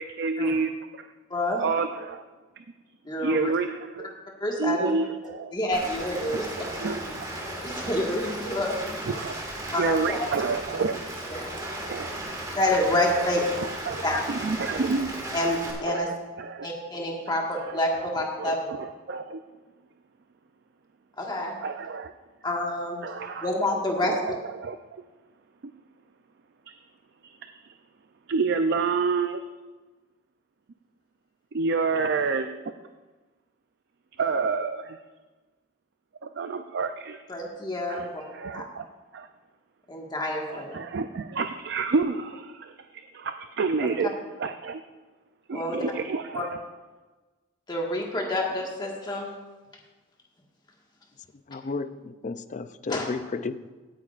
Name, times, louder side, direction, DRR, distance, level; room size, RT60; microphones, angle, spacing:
voice 1, 0.0-1.1 1.6-2.2 2.6-2.7 3.2-4.1 4.6-5.6 6.2-7.1 8.5-8.6 9.0-9.4 9.7-11.0 11.9-12.6 13.1-15.1 15.8-16.7 17.3-19.4 21.6-22.1 23.0-23.5 24.0-25.0 25.6-25.7 26.7-26.8 27.2-27.8 28.3-29.4 31.5-32.7 34.2-35.0 36.2-37.2 37.9-38.9 39.1-39.3 40.5-44.1 44.4-44.8 45.5-46.6, right 4 dB, 55° right, 7 dB, 0.4 m, -29 dB
voice 2, 1.3-1.6 3.0-3.5 4.4-4.9 5.5-6.5 7.6-8.8 9.7-10.2 11.3-11.5 12.5-13.4 14.0-14.2 15.3-16.1 16.6-18.7 21.2-21.6 22.4-23.0 23.4-24.1 37.3-38.1 38.5-38.6 39.9-40.8 45.5-45.8 46.3-46.4 47.7-49.3 52.9-53.0, left 1 dB, 20° left, -1 dB, 1.6 m, -28 dB
Rain, 5.7-15.7, right 1 dB, 20° right, 1.9 m, -35 dB
voice 3, 51.5-53.7, left 4 dB, 35° left, 12 dB, 0.4 m, -33 dB
17.0 x 9.4 x 2.5 m, 1.3 s
head